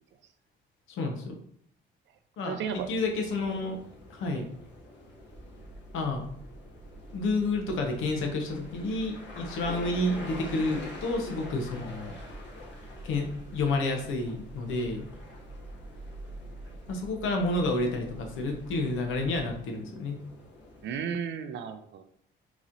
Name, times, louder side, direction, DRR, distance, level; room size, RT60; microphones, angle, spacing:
voice 1, 1.0-1.4 2.4-3.8 4.1-4.5 5.9-6.3 7.1-12.1 13.0-13.3 13.5-15.1 16.9-20.2, left 2 dB, 80° left, 3 dB, 0.8 m, -30 dB
voice 2, 2.5-2.9 4.4-4.5 20.8-22.0, right 7 dB, 65° right, 9 dB, 0.5 m, -34 dB
sound 1, 2.6-21.0, left 2 dB, 65° left, 1.2 m, -47 dB
sound 2, 5.3-19.6, right 2 dB, 15° right, 0.8 m, -47 dB
4.0 x 2.9 x 2.5 m, 0.65 s
cardioid pair, 90°, 20 cm